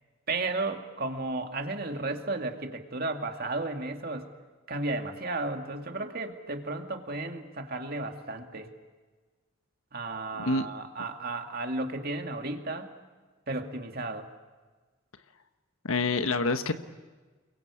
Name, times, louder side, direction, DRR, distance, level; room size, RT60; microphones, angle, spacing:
voice 1, 0.3-4.3 4.7-8.7 9.9-12.9 13.5-14.3, right 2 dB, 45° right, 4 dB, 2.4 m, -33 dB
voice 2, 10.3-10.7 15.8-16.7, left 3 dB, 85° left, 8 dB, 1.3 m, -27 dB
29.0 x 22.5 x 8.5 m, 1.3 s
head